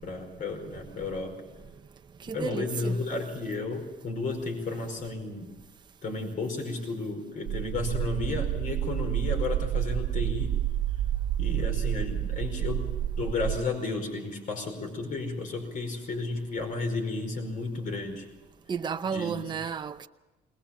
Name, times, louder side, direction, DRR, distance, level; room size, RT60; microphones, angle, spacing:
voice 1, 0.0-1.4 2.3-5.5 6.0-10.5 11.4-12.9 13.2-18.3 19.1-19.5, left 3 dB, 50° left, 5.0 m, -33 dB
voice 2, 2.2-3.0 18.7-20.1, right 6 dB, 25° right, 0.7 m, -32 dB
sound 1, 7.5-13.6, right 11 dB, 80° right, 0.8 m, -29 dB
20.5 x 20.5 x 7.3 m
cardioid pair, 110°, 17 cm